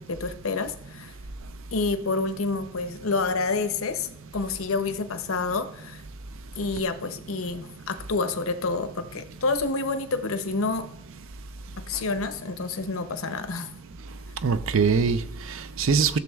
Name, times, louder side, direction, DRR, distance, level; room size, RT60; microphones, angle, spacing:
voice 1, 0.1-1.1 1.7-6.0 6.6-10.9 11.8-13.7, left 3 dB, 80° left, 0.7 m, -28 dB
voice 2, 14.1-16.2, right 5 dB, 70° right, 0.5 m, -24 dB
14.0 x 7.0 x 2.4 m
head